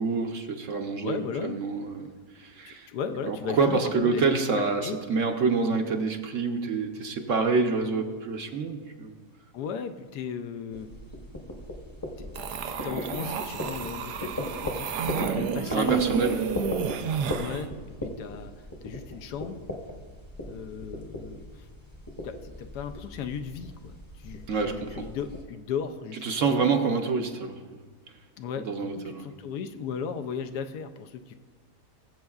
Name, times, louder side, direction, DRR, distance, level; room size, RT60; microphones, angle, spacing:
voice 1, 0.0-2.9 3.3-9.1 15.1-15.4 15.7-16.5 24.5-25.1 26.2-27.8 28.6-29.3, right 4 dB, 60° right, 4 dB, 1.0 m, -27 dB
voice 2, 1.0-1.6 2.6-4.2 4.8-5.0 9.5-10.9 12.2-14.9 15.2-16.0 17.4-19.7 20.4-21.5 22.2-26.7 28.4-31.3, left 7 dB, 80° left, 8 dB, 1.2 m, -36 dB
sound 1, 10.7-25.5, left 1 dB, 15° left, 0.8 m, -38 dB
sound 2, 12.4-17.6, right 7 dB, 85° right, 1.3 m, -31 dB
20.5 x 7.6 x 2.4 m, 1.4 s
omnidirectional pair, 1.7 m